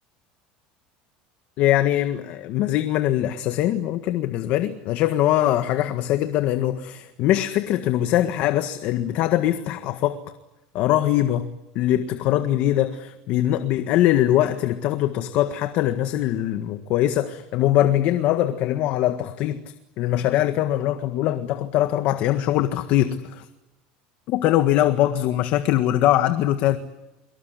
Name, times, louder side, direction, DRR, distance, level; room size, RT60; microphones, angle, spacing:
voice 1, 1.6-10.2 10.7-19.6 20.0-23.5 24.3-26.8, left 13 dB, 55° left, 1.7 m, -22 dB
24.5 x 23.5 x 9.6 m
cardioid pair, 145°, 3 cm